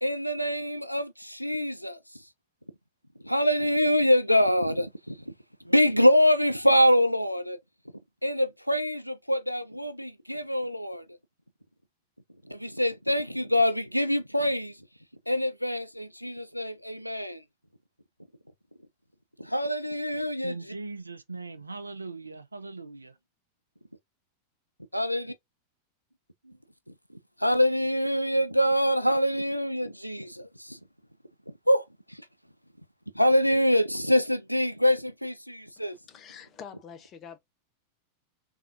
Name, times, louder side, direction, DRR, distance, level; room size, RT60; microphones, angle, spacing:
voice 1, 0.0-2.2 3.2-5.3 5.6-7.6 8.2-11.0 12.5-14.8 15.3-17.4 19.4-20.6 24.9-25.3 27.4-30.8 31.5-32.2 33.1-36.0, equal, 90° left, 0.3 m, -25 dB
voice 2, 20.4-23.1 26.4-26.6, right 3 dB, 80° right, 0.4 m, -40 dB
voice 3, 35.8-37.4, left 7 dB, 30° left, 0.7 m, -46 dB
3.4 x 2.4 x 2.5 m
figure-of-eight pair, 90°, 0 cm